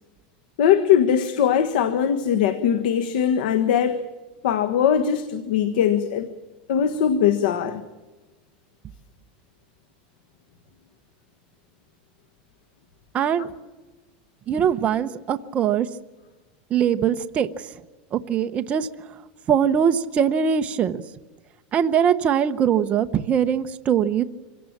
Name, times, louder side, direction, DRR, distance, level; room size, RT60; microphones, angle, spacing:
voice 1, 0.6-4.0 4.4-6.3 6.7-7.8, left 8 dB, 80° left, 1.4 m, -20 dB
voice 2, 13.1-13.5 14.5-15.9 16.7-17.5 18.1-18.9 19.5-21.0 21.7-24.2, right 8 dB, 25° right, 0.9 m, -21 dB
25.5 x 17.0 x 7.4 m
supercardioid pair, 155°, 5 cm